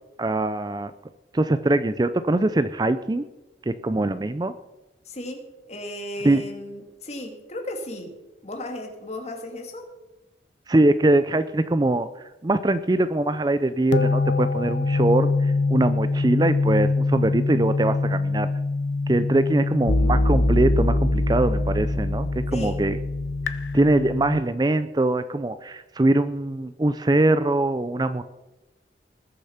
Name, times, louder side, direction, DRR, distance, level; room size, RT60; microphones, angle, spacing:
voice 1, 0.2-0.9 1.3-3.2 3.6-4.5 6.2-6.4 10.7-18.5 19.1-23.0 23.5-28.2, right 2 dB, 20° right, 12 dB, 0.4 m, -22 dB
voice 2, 5.0-8.2 8.4-9.9 22.5-22.9, left 1 dB, 35° left, 3 dB, 2.2 m, -35 dB
sound 1, 13.9-24.4, left 2 dB, 85° left, 0.9 m, -23 dB
20.0 x 6.8 x 5.8 m, 1.1 s
head